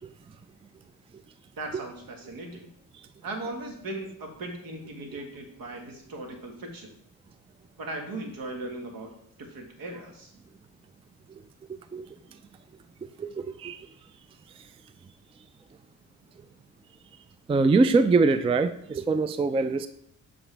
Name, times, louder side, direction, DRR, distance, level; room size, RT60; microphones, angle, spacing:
voice 1, 1.5-2.7 3.2-6.9 7.8-9.1 9.4-10.3, right 2 dB, 65° right, 3 dB, 1.7 m, -38 dB
voice 2, 17.5-19.9, right 3 dB, 15° right, 11 dB, 0.3 m, -22 dB
7.2 x 6.0 x 3.4 m, 0.69 s
cardioid pair, 85°, 36 cm